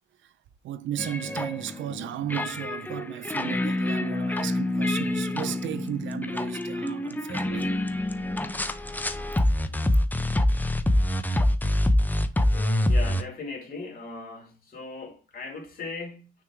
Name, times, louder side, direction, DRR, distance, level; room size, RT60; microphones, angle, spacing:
voice 1, 0.6-7.7 8.3-9.9, right 11 dB, 75° right, 0.5 m, -35 dB
sound 1, 1.0-13.2, left 1 dB, 10° left, 0.6 m, -26 dB
voice 2, 12.5-16.3, left 4 dB, 45° left, 2.5 m, -38 dB
6.3 x 3.5 x 4.5 m
cardioid pair, 90°, 20 cm